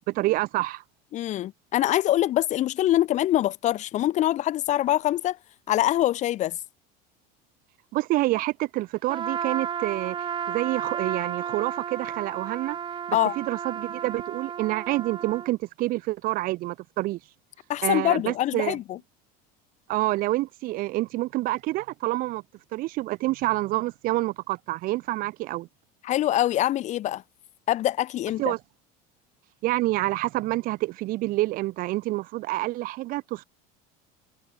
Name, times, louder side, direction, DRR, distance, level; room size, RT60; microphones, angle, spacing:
voice 1, 0.1-0.8 7.9-10.2 10.5-12.8 13.1-17.2 17.8-18.8 19.9-22.4 22.7-25.7 28.4-28.6 29.6-33.4, right 18 dB, 50° right, 4.3 m, -27 dB
voice 2, 1.1-5.4 5.7-6.6 13.1-13.3 17.7-19.0 26.0-27.2 27.7-28.5, left 13 dB, 40° left, 3.6 m, -24 dB
Trumpet, 9.1-15.5, right 8 dB, 25° right, 7.9 m, -33 dB
cardioid pair, 160°, 19 cm